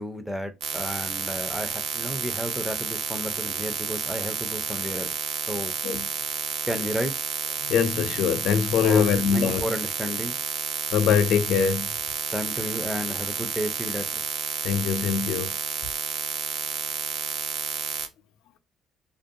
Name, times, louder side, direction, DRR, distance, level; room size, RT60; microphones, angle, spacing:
voice 1, 0.0-5.1 5.5-5.7 6.7-7.1 8.8-9.0 9.3-10.4 12.3-14.2, equal, ahead, 0.5 m, -32 dB
sound 1, 0.6-18.1, right 7 dB, 90° right, 0.5 m, -30 dB
voice 2, 7.6-9.6 10.9-11.9 14.6-15.5, left 7 dB, 80° left, 0.4 m, -23 dB
2.5 x 2.2 x 2.5 m
cardioid pair, 140°, 0 cm